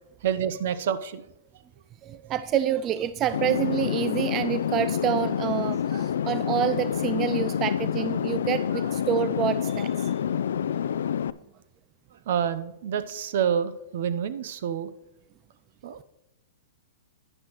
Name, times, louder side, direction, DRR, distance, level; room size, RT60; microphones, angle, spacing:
voice 1, 0.2-1.2 5.9-6.0 8.7-8.9 12.3-14.9 15.8-16.0, right 8 dB, 65° right, 13 dB, 0.7 m, -28 dB
voice 2, 2.0-10.1, right 10 dB, 30° right, 13 dB, 0.3 m, -27 dB
sound 1, 3.3-11.3, left 8 dB, 75° left, 0.3 m, -27 dB
11.0 x 9.8 x 3.1 m, 0.90 s
hypercardioid pair, 130°, 0 cm